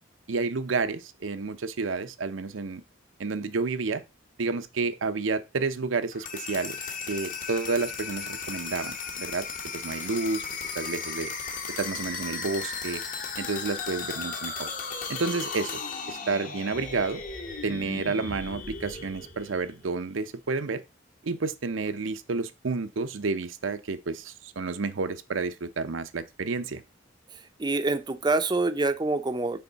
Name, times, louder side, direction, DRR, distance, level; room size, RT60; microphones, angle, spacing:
voice 1, 0.3-2.8 3.2-4.0 4.4-6.8 7.1-9.5 9.7-10.4 10.7-11.3 11.8-13.0 13.4-14.7 15.1-15.8 16.1-17.2 17.6-20.8 21.2-26.8, right 4 dB, 80° right, 0.7 m, -30 dB
sound 1, 6.1-20.0, left 5 dB, 45° left, 1.0 m, -36 dB
voice 2, 27.6-29.6, right 3 dB, 20° right, 0.5 m, -26 dB
5.8 x 4.8 x 4.0 m
head